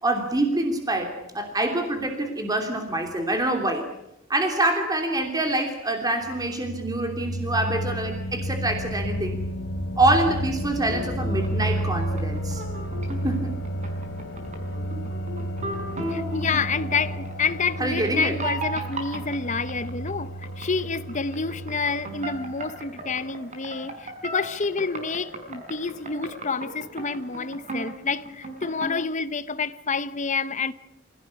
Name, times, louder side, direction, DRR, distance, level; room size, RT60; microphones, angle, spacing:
voice 1, 0.0-3.9 4.3-9.4 10.0-12.6 13.2-13.5 17.8-18.3, right 1 dB, 20° right, 3.0 m, -25 dB
sound 1, 6.2-23.0, right 1 dB, 65° left, 3.4 m, -32 dB
sound 2, 10.9-29.0, right 1 dB, 35° right, 5.5 m, -36 dB
voice 2, 16.1-30.7, left 4 dB, 35° left, 1.0 m, -28 dB
26.0 x 17.0 x 9.7 m
head